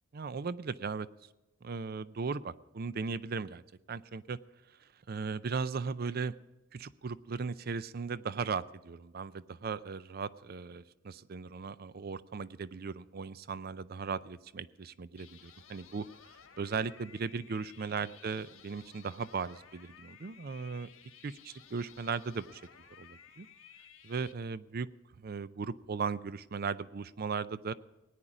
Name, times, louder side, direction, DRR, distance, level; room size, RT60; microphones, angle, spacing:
voice 1, 0.1-1.1 1.6-3.6 3.9-4.4 5.1-6.3 6.7-16.0 16.6-20.9 21.2-22.6 23.0-23.5 24.0-24.9 25.2-27.7, right 5 dB, 50° right, 16 dB, 0.5 m, -37 dB
sound 1, 15.2-24.3, left 8 dB, 90° left, 1.5 m, -56 dB
18.0 x 10.0 x 4.9 m, 1.1 s
head